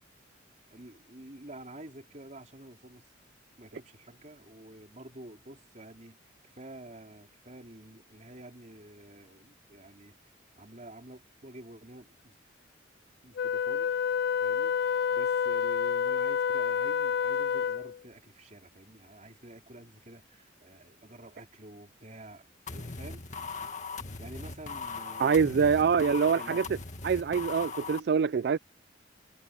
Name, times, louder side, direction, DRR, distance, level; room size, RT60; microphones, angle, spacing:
voice 1, 0.7-3.1 3.6-6.2 6.4-10.2 10.6-12.4 13.2-13.9 14.4-22.4 22.7-23.3 24.2-26.8, right 1 dB, 40° right, 3.8 m, -49 dB
Wind instrument woodwind instrument, 13.4-18.0, left 7 dB, 55° left, 0.3 m, -28 dB
sound 1, 22.7-28.0, left 4 dB, 40° left, 1.9 m, -39 dB
voice 2, 25.2-26.6 27.0-28.6, right 6 dB, 55° right, 0.3 m, -25 dB
head